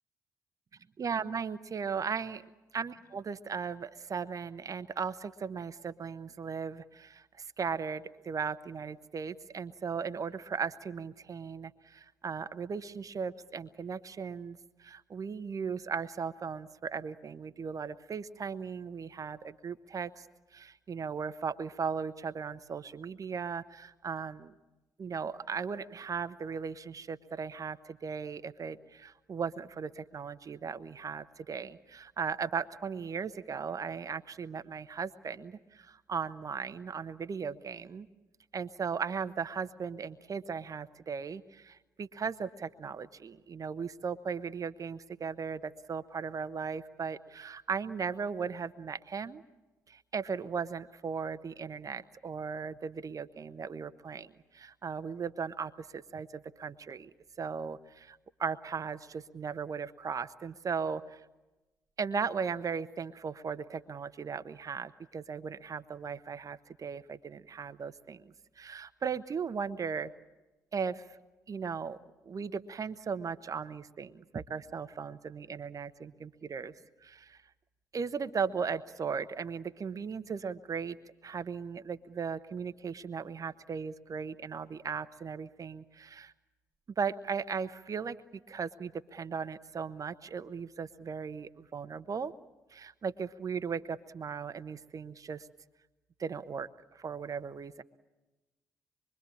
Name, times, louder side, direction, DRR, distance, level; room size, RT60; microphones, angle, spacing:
voice 1, 1.0-2.5 2.7-20.3 20.5-24.5 25.0-38.1 38.5-49.4 49.9-57.1 57.4-61.2 62.0-70.1 70.7-71.2 71.5-72.0 72.2-77.4 77.9-81.0 81.2-86.3 87.0-88.2 88.5-92.3 92.7-95.5 96.2-97.8, right 6 dB, 40° right, 11 dB, 1.0 m, -37 dB
25.0 x 24.0 x 8.6 m, 1.1 s
figure-of-eight pair, 45°, 9 cm